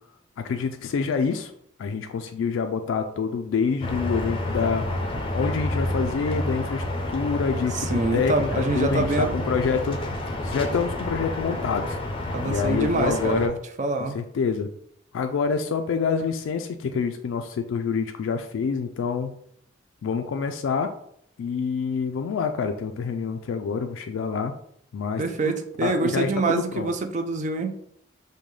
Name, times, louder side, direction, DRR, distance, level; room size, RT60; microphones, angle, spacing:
voice 1, 0.4-1.5 1.8-4.9 5.3-6.8 7.1-10.0 10.4-12.0 12.4-13.6 14.1-14.7 15.1-19.4 20.0-20.9 21.4-24.5 24.9-26.9, left 5 dB, 85° left, 6 dB, 0.3 m, -27 dB
sound 1, 3.8-13.5, left 1 dB, 30° left, 0.5 m, -29 dB
voice 2, 7.9-9.3 12.3-13.5 13.8-14.2 25.2-27.7, right 3 dB, 40° right, 6 dB, 0.4 m, -25 dB
5.2 x 2.2 x 3.1 m, 0.69 s
head